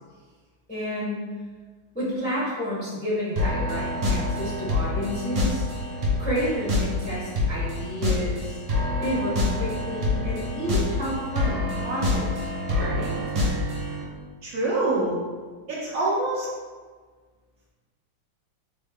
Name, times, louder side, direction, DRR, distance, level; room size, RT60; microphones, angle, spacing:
voice 1, 0.7-1.2 1.9-5.7 6.2-8.6 9.0-12.5 12.8-13.1, equal, 15° left, -9 dB, 0.3 m, -30 dB
sound 1, 3.4-14.0, left 2 dB, 55° right, 0.9 m, -26 dB
voice 2, 14.4-15.2 15.7-16.5, right 2 dB, 90° right, -6 dB, 0.7 m, -25 dB
4.1 x 2.1 x 3.5 m, 1.5 s
omnidirectional pair, 2.3 m